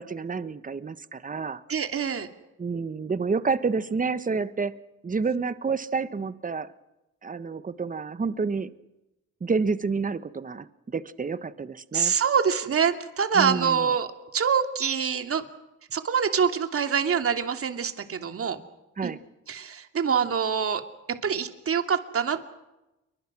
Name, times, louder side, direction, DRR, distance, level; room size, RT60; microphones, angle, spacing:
voice 1, 0.0-1.6 2.6-4.8 5.0-6.7 7.2-8.7 9.4-12.1 13.3-13.9 19.0-19.2, right 4 dB, 25° right, 14 dB, 1.4 m, -29 dB
voice 2, 1.7-2.3 11.9-14.1 14.3-15.4 15.9-18.6 19.0-19.1 19.5-20.8 21.1-22.4, right 7 dB, 50° right, 7 dB, 2.8 m, -25 dB
29.0 x 23.5 x 6.3 m, 0.96 s
cardioid pair, 90°, 30 cm